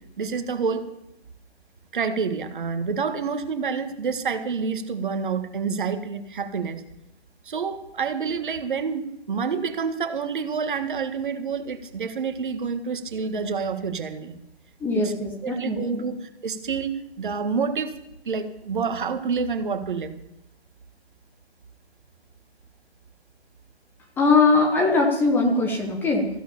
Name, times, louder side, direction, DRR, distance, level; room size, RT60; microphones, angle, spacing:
voice 1, 0.2-0.9 1.9-6.8 7.4-14.4 14.9-15.1 15.4-18.0 18.2-20.1, right 5 dB, 50° right, 9 dB, 1.7 m, -28 dB
voice 2, 14.8-16.0 24.2-26.3, left 3 dB, 5° left, 1 dB, 0.9 m, -21 dB
15.0 x 11.0 x 7.0 m, 0.82 s
figure-of-eight pair, 140°, 33 cm